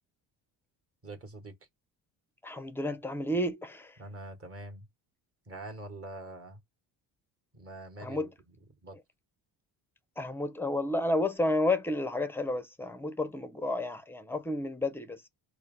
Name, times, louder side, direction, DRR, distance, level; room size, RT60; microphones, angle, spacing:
voice 1, 1.0-1.5 4.0-4.9 5.5-6.6 7.5-8.5 8.8-9.0, right 2 dB, 30° right, 1.2 m, -44 dB
voice 2, 2.4-3.9 8.0-8.3 10.2-15.3, left 1 dB, 5° left, 0.5 m, -31 dB
4.2 x 2.1 x 3.6 m
supercardioid pair, 80°, 44 cm